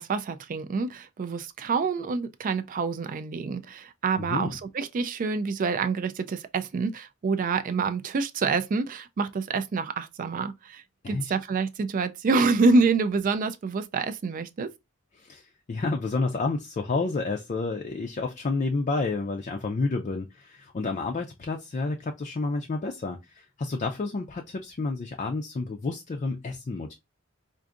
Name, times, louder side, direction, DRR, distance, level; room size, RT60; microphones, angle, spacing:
voice 1, 0.0-14.7, right 4 dB, 40° right, 0.3 m, -27 dB
voice 2, 4.2-4.5 11.0-11.3 15.2-26.9, left 3 dB, 35° left, 0.4 m, -30 dB
4.6 x 2.5 x 2.5 m
head